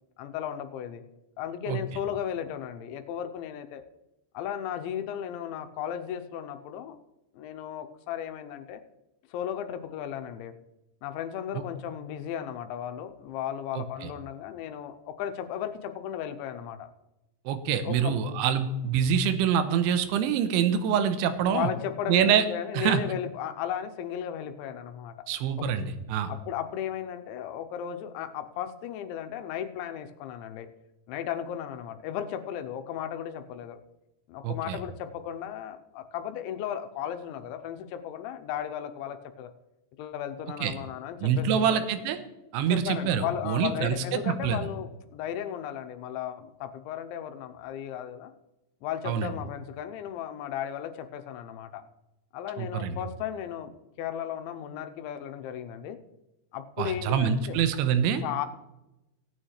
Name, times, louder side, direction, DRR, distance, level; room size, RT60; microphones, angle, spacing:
voice 1, 0.2-1.0 1.4-3.8 4.3-7.0 7.3-8.8 9.3-10.5 11.0-16.9 17.7-18.2 21.4-25.1 26.3-30.7 31.1-33.8 34.3-39.5 40.0-41.9 42.7-48.3 48.8-51.8 52.3-53.7 54.0-56.0 56.5-57.7 58.2-58.5, left 9 dB, 90° left, 8 dB, 3.1 m, -35 dB
voice 2, 13.7-14.1 17.5-21.7 22.1-22.5 22.7-23.0 25.3-26.3 34.4-34.8 40.6-40.7 41.2-42.2 42.5-44.7 49.1-49.3 52.6-53.0 56.8-58.2, right 8 dB, 85° right, 9 dB, 3.2 m, -26 dB
17.5 x 8.8 x 3.2 m, 0.95 s
omnidirectional pair, 5.3 m